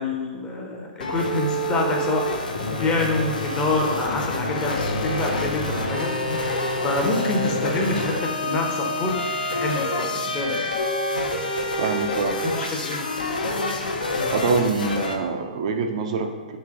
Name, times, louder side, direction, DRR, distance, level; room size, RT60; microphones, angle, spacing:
voice 1, 0.0-2.3 2.7-6.5 6.8-9.2 9.5-10.7 12.4-13.0, left 2 dB, 20° left, 1 dB, 0.7 m, -27 dB
sound 1, 1.0-15.2, left 1 dB, 70° left, 0.6 m, -27 dB
sound 2, 2.6-14.4, right 3 dB, 85° right, 1.1 m, -46 dB
voice 2, 11.8-12.4 14.3-16.6, right 4 dB, 45° right, 5 dB, 0.4 m, -25 dB
3.2 x 3.2 x 4.5 m, 1.3 s
figure-of-eight pair, 120°, 5 cm